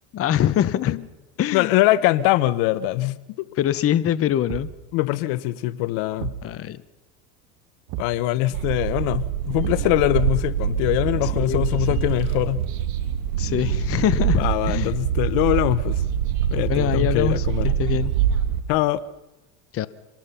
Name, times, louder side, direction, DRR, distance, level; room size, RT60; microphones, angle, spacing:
voice 1, 0.1-1.0 1.4-1.7 3.6-4.7 6.4-6.8 11.4-11.6 11.9-12.0 13.4-14.9 16.7-17.4 17.8-18.1 19.7-19.9, left 11 dB, 35° left, 0.9 m, -23 dB
voice 2, 1.5-3.5 4.9-6.3 8.0-12.6 14.4-16.0 16.5-17.7 18.7-19.0, left 16 dB, 60° left, 1.0 m, -22 dB
Thump thud, 4.5-4.9 6.2-6.5 7.9-8.2 9.6-10.0 11.3-11.9, right 14 dB, 55° right, 1.5 m, -33 dB
sound 1, 8.5-18.6, right 9 dB, 85° right, 2.2 m, -24 dB
26.0 x 19.5 x 5.7 m
supercardioid pair, 105°, 42 cm